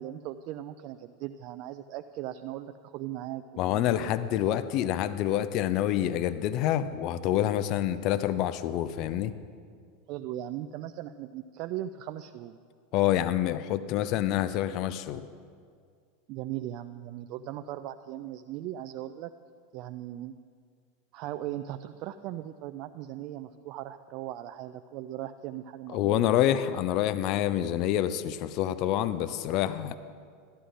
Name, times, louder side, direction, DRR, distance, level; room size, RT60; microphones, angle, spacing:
voice 1, 0.0-4.1 10.1-12.6 16.3-19.3 19.7-20.3 21.1-26.3, right 12 dB, 50° right, 9 dB, 0.3 m, -38 dB
voice 2, 3.6-9.3 12.9-15.3 25.9-29.9, left 12 dB, 45° left, 14 dB, 0.4 m, -27 dB
14.0 x 12.0 x 2.6 m, 2.1 s
figure-of-eight pair, 85°, 0 cm